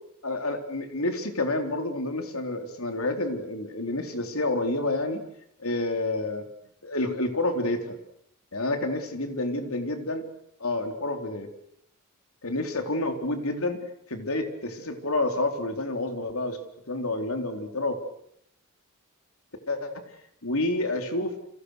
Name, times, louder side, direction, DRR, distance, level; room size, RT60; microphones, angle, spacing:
voice 1, 0.2-5.2 5.6-6.4 6.8-8.0 8.5-10.2 10.6-11.5 12.4-13.8 14.1-16.6 16.9-18.0 19.7-20.0 20.4-21.4, left 2 dB, 70° left, 5 dB, 4.1 m, -29 dB
30.0 x 27.0 x 6.6 m, 0.72 s
head